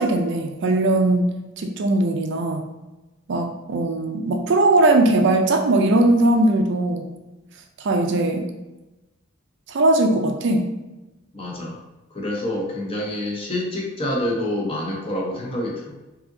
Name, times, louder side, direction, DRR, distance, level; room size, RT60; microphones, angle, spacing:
voice 1, 0.0-2.7 3.3-7.1 7.8-8.5 9.7-10.7, right 2 dB, 60° right, 4 dB, 0.4 m, -19 dB
voice 2, 11.3-11.8 12.1-16.0, left 1 dB, 25° left, -2 dB, 0.8 m, -27 dB
5.0 x 2.7 x 2.6 m, 1.0 s
head